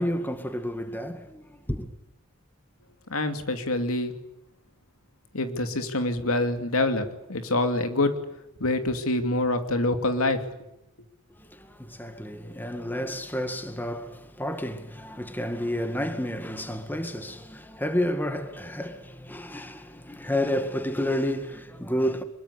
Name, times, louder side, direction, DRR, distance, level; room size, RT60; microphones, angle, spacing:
voice 1, 0.0-1.9 11.3-22.2, left 1 dB, 10° left, 2.0 m, -30 dB
voice 2, 3.1-4.1 5.3-8.1 8.6-10.4, left 2 dB, 90° left, 2.7 m, -26 dB
24.0 x 22.0 x 8.4 m
head